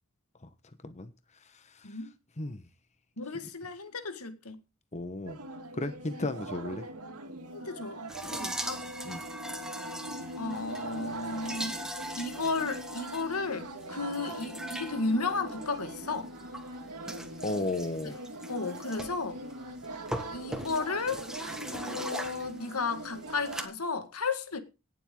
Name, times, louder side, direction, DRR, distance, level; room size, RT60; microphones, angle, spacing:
voice 1, 3.2-4.6 6.2-6.3 7.5-8.9 10.4-11.8 12.1-16.3 18.5-19.4 20.3-21.2 21.7-24.6, left 4 dB, 80° left, 1.9 m, -34 dB
voice 2, 4.9-5.4 5.7-6.8 9.0-9.2 17.4-18.2, left 2 dB, 30° left, 1.1 m, -34 dB
sound 1, 5.2-23.7, right 1 dB, 85° right, 2.4 m, -42 dB
sound 2, 8.1-23.6, right 1 dB, 5° right, 1.6 m, -41 dB
18.0 x 7.5 x 3.8 m
head